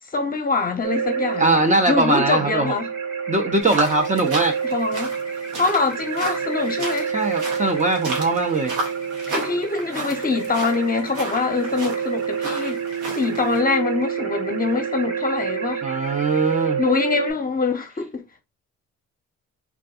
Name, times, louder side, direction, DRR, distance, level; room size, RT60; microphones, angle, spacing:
voice 1, 0.1-1.6 1.9-2.9 4.7-5.1 5.6-7.1 9.3-12.8 13.1-15.8 16.8-18.4, left 4 dB, 30° left, 0.7 m, -24 dB
sound 1, 0.8-17.3, right 6 dB, 55° right, 1.1 m, -28 dB
voice 2, 1.4-2.7 3.3-4.5 7.1-8.7 15.8-16.8, right 3 dB, 25° right, 0.5 m, -21 dB
sound 2, 3.6-13.6, right 2 dB, 90° right, 1.1 m, -33 dB
3.4 x 2.5 x 2.4 m
cardioid pair, 90°, 30 cm